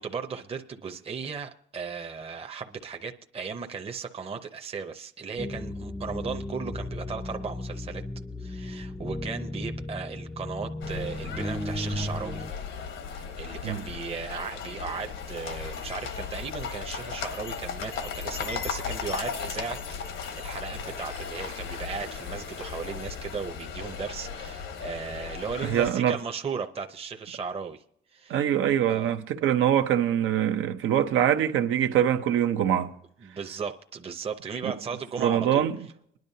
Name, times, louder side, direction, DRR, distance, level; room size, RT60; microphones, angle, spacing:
voice 1, 0.0-8.0 8.4-12.4 13.1-19.8 20.1-27.8 28.1-28.4 28.8-29.1 33.2-35.7, right 5 dB, 30° right, 0.7 m, -36 dB
sound 1, 5.4-12.5, left 1 dB, 5° left, 0.5 m, -35 dB
sound 2, 10.8-25.9, left 6 dB, 75° left, 1.2 m, -36 dB
voice 2, 25.6-26.2 28.3-32.9 34.6-34.7 35.2-35.8, right 10 dB, 85° right, 0.8 m, -24 dB
22.5 x 10.5 x 2.8 m
cardioid pair, 90°, 20 cm